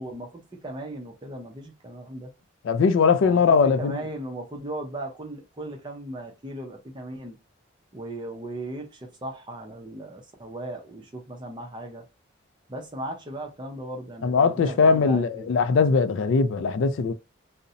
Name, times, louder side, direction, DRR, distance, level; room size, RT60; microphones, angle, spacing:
voice 1, 0.0-2.3 3.2-7.4 7.9-12.0 12.7-15.5, right 1 dB, 25° right, 0.5 m, -37 dB
voice 2, 2.6-4.0 14.2-17.1, left 5 dB, 75° left, 0.3 m, -20 dB
2.5 x 2.0 x 2.6 m
head